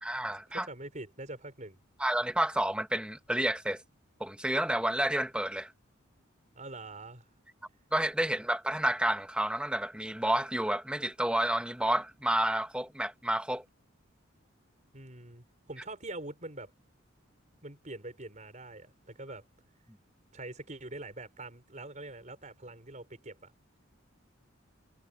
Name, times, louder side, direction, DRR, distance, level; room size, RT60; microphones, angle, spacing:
voice 1, 0.0-0.7 2.0-3.8 4.2-5.7 7.9-13.6, right 1 dB, 5° right, 1.3 m, -30 dB
voice 2, 0.5-1.8 6.6-7.2 14.9-16.7 17.6-19.4 20.3-23.5, right 2 dB, 35° right, 5.5 m, -44 dB
head